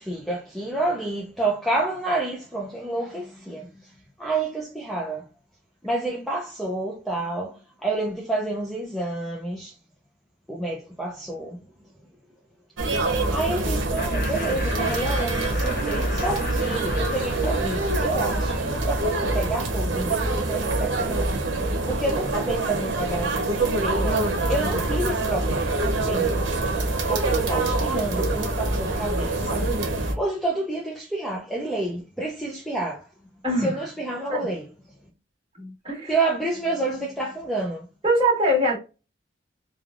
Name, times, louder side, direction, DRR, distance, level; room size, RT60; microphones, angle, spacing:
voice 1, 0.0-3.7 4.2-5.2 5.8-7.6 7.8-9.7 10.5-11.6 13.3-21.3 21.9-25.7 26.1-26.4 27.1-29.7 30.2-33.1 33.6-34.6 36.1-37.9, right 2 dB, ahead, 0.4 m, -29 dB
sound 1, 12.8-30.1, right 2 dB, 80° right, 0.9 m, -25 dB
Laughter, 14.0-19.3, left 2 dB, 50° left, 0.8 m, -36 dB
voice 2, 33.4-33.8 34.3-34.5 35.6-36.2 38.0-38.8, equal, 30° right, 1.4 m, -23 dB
3.2 x 2.3 x 2.4 m
head